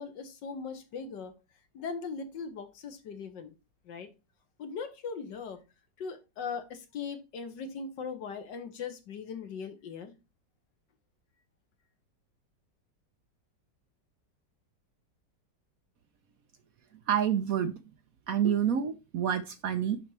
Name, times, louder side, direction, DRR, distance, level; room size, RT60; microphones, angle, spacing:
voice 1, 0.0-1.3 1.7-3.5 3.9-4.1 4.6-5.6 6.0-10.2, left 5 dB, 80° left, 1.8 m, -39 dB
voice 2, 17.1-17.8 18.3-20.0, right 9 dB, 65° right, 0.9 m, -28 dB
10.5 x 4.2 x 3.3 m
omnidirectional pair, 1.9 m